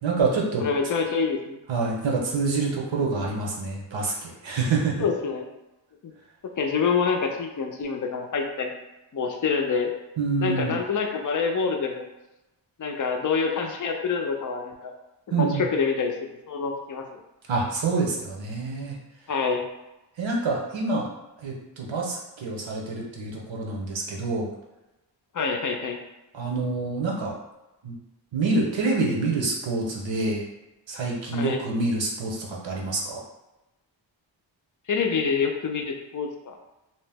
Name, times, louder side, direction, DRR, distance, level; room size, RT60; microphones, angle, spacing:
voice 1, 0.0-0.6 1.7-5.0 10.2-10.8 15.3-15.6 17.5-18.9 20.2-21.1 21.4-24.5 26.3-27.3 27.8-28.0 28.3-30.4 30.9-33.2, right 3 dB, 75° right, -2 dB, 0.8 m, -27 dB
voice 2, 0.6-1.6 5.0-5.5 6.0-6.1 6.6-8.7 9.1-9.9 10.4-12.0 12.8-14.9 15.4-16.1 16.5-17.0 19.3-19.6 25.3-26.0 31.3-31.6 34.9-36.6, left 5 dB, 45° left, 3 dB, 0.4 m, -26 dB
2.8 x 2.0 x 3.3 m, 0.99 s
wide cardioid pair, 95°, 46 cm